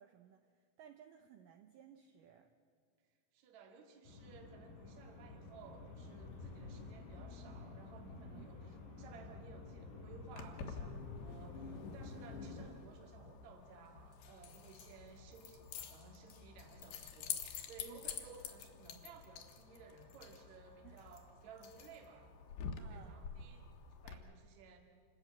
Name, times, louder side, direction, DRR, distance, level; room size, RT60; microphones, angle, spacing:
voice 1, 0.0-2.5 8.2-8.7 12.0-12.4 17.9-18.1 20.8-21.1 22.8-23.3, right 10 dB, 85° right, 7 dB, 1.9 m, -60 dB
voice 2, 3.3-22.3 22.8-23.7 24.0-24.8, right 5 dB, 50° right, 2 dB, 2.9 m, -57 dB
sound 1, 4.1-12.7, left 3 dB, 90° left, 6.2 m, -50 dB
Keys jangling, 10.3-24.1, left 7 dB, 70° left, 3.0 m, -49 dB
27.5 x 13.5 x 8.5 m, 2.1 s
omnidirectional pair, 4.9 m